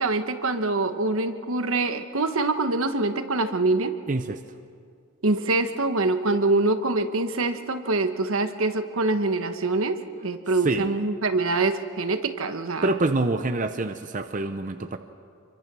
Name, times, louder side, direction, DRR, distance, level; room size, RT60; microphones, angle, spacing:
voice 1, 0.0-4.0 5.2-12.9, right 3 dB, 70° right, 8 dB, 1.2 m, -25 dB
voice 2, 4.1-4.4 10.6-10.9 12.8-15.0, right 2 dB, 35° right, 8 dB, 0.6 m, -26 dB
26.5 x 23.5 x 6.2 m, 2.3 s
head